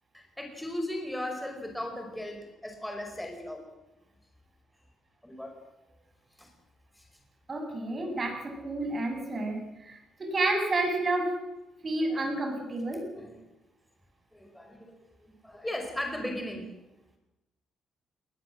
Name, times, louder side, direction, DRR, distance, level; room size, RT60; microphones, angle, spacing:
voice 1, 0.1-3.6 5.2-5.6 6.4-6.5 6.9-7.1 12.1-12.3 13.1-13.4 14.3-16.7, left 1 dB, 5° left, 3 dB, 5.2 m, -37 dB
voice 2, 7.5-11.3 11.8-13.1, right 2 dB, 35° right, 4 dB, 7.5 m, -30 dB
20.5 x 20.0 x 7.7 m, 0.97 s
cardioid pair, 90°, 0 cm